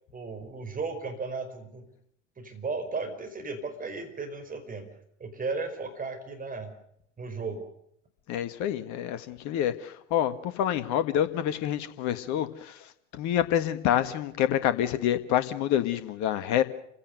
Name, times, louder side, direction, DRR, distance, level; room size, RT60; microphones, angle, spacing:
voice 1, 0.1-1.9 2.4-4.9 5.2-6.7 7.2-7.7, right 4 dB, 20° right, 6 dB, 5.2 m, -35 dB
voice 2, 8.3-12.7 13.1-16.6, left 11 dB, 50° left, 11 dB, 1.8 m, -27 dB
28.5 x 16.5 x 6.7 m, 0.74 s
figure-of-eight pair, 75°, 37 cm